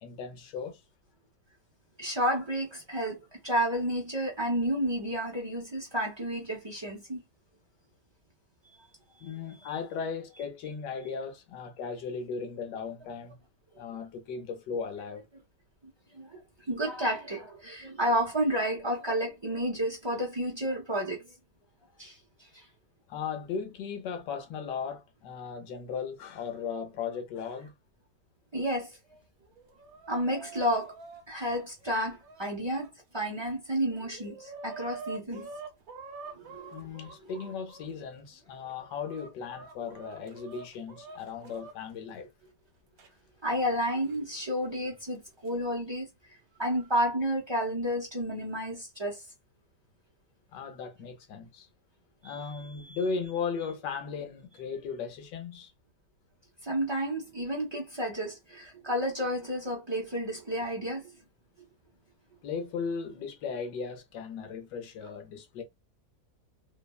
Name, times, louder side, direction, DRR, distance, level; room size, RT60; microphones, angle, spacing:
voice 1, 0.0-0.8 9.2-13.4 13.8-15.2 23.1-27.7 36.7-42.3 50.5-51.7 52.2-55.7 62.4-65.6, left 5 dB, 75° left, 1.3 m, -37 dB
voice 2, 2.0-7.2 8.6-8.9 9.2-9.8 16.1-21.3 22.0-22.2 22.5-22.6 28.5-29.0 30.1-30.9 31.3-35.5 36.3-36.8 43.4-46.1 46.6-49.2 52.2-53.0 56.6-61.1, equal, 40° right, 0.3 m, -31 dB
Chicken rooster, 29.4-32.9 33.5-33.6 33.8-37.9 38.5-41.7 43.0-43.1 44.1-44.2 45.2-45.5, right 4 dB, 60° right, 1.0 m, -46 dB
3.2 x 2.1 x 2.3 m
omnidirectional pair, 1.9 m